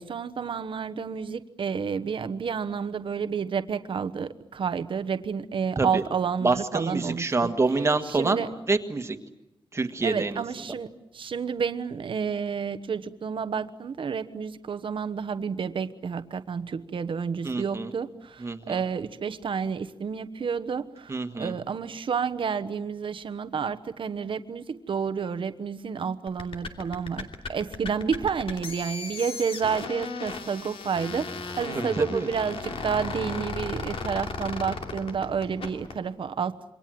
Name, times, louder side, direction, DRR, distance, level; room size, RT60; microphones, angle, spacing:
voice 1, 0.0-7.5 8.0-8.5 10.0-10.9 11.1-31.3 31.6-36.5, right 6 dB, 60° right, 11 dB, 1.2 m, -30 dB
voice 2, 6.4-9.2 9.7-10.4 17.4-17.9 18.4-18.8 21.1-21.5 31.7-32.3, right 3 dB, 30° right, 7 dB, 1.6 m, -27 dB
sound 1, 26.3-36.0, left 4 dB, 70° left, 2.9 m, -36 dB
28.0 x 24.0 x 7.8 m, 0.90 s
wide cardioid pair, 170°, 10 cm